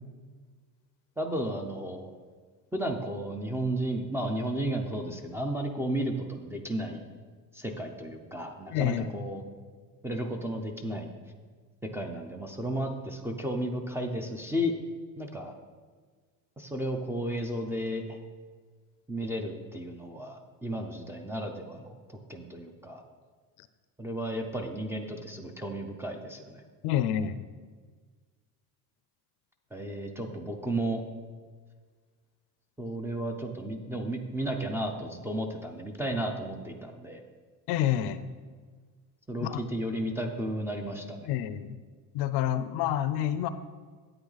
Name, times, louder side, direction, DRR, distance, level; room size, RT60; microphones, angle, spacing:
voice 1, 1.2-2.1 2.7-7.1 7.5-9.4 10.0-11.1 11.9-14.7 15.2-15.5 16.6-18.2 19.1-21.9 22.3-23.0 24.0-26.6 29.7-31.0 32.8-37.2 39.3-41.3, right 1 dB, 5° right, 3 dB, 0.5 m, -33 dB
voice 2, 8.7-9.1 23.6-23.7 26.8-27.4 37.7-38.2 39.4-39.6 41.3-41.8 42.1-43.5, left 11 dB, 70° left, 13 dB, 0.6 m, -28 dB
9.1 x 8.9 x 4.0 m, 1.5 s
cardioid pair, 170°, 41 cm